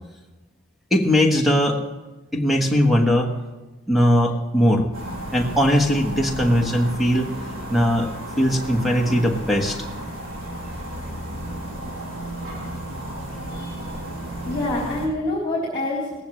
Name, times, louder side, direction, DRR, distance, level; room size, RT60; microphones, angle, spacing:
voice 1, 0.9-1.8 2.3-3.3 3.9-4.9 5.3-7.3 7.7-8.1 8.4-9.8, equal, ahead, 2 dB, 1.3 m, -19 dB
sound 1, 4.9-15.1, right 1 dB, 80° right, 3.4 m, -33 dB
voice 2, 13.5-13.9 14.4-16.2, left 2 dB, 20° left, -6 dB, 3.7 m, -26 dB
18.5 x 15.5 x 3.3 m, 1.2 s
head